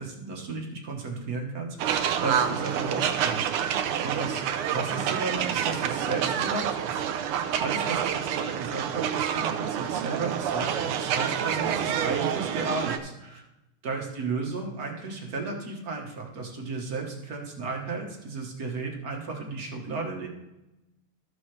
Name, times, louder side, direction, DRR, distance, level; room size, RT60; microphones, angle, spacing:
voice 1, 0.0-3.7 4.0-13.4 13.8-20.3, right 3 dB, 45° right, 1 dB, 1.6 m, -34 dB
sound 1, 1.8-13.0, right 9 dB, 85° right, 1.6 m, -28 dB
14.0 x 6.3 x 3.2 m, 0.95 s
omnidirectional pair, 2.4 m